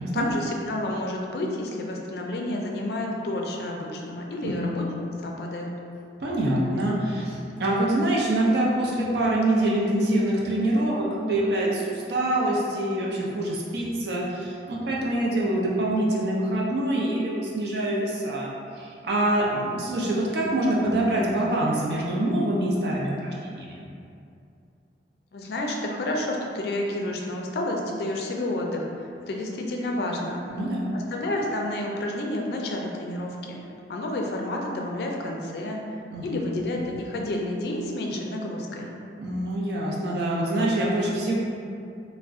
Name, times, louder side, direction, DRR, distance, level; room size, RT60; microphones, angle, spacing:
voice 1, 0.1-4.8 5.2-5.7 25.3-28.9 29.3-30.4 30.9-33.6 33.9-35.8 36.2-38.9, left 1 dB, 60° left, 0 dB, 0.4 m, -30 dB
voice 2, 4.4-4.7 6.2-18.5 18.7-23.8 30.5-31.0 36.1-36.6 39.2-41.4, right 1 dB, 65° right, -4 dB, 0.5 m, -25 dB
2.4 x 2.1 x 3.6 m, 2.5 s
head